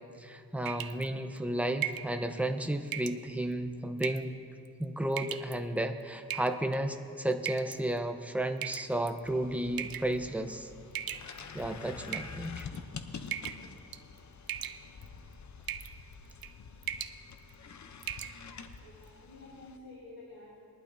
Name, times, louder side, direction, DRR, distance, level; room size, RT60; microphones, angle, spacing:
voice 1, 0.2-4.3 4.8-10.7 11.5-12.7, right 1 dB, 5° right, 7 dB, 0.8 m, -33 dB
sound 1, 0.7-1.1 1.8-2.1 2.9-3.2 4.0-4.3 5.1-5.5 6.3-6.8 7.5-7.8 8.6-9.2 9.8-10.1 10.9-11.6 12.1-12.8 13.3-13.7 13.9-14.2 14.5-15.1 15.7-15.9 16.3-16.5 16.8-17.2 17.5-17.6 18.0-18.3, right 10 dB, 80° right, 0.6 m, -38 dB
sound 2, 9.2-19.8, left 5 dB, 55° left, 0.8 m, -47 dB
voice 2, 18.8-20.6, left 2 dB, 75° left, -6 dB, 3.4 m, -50 dB
21.5 x 11.5 x 2.7 m, 2.3 s
cardioid pair, 75°, 35 cm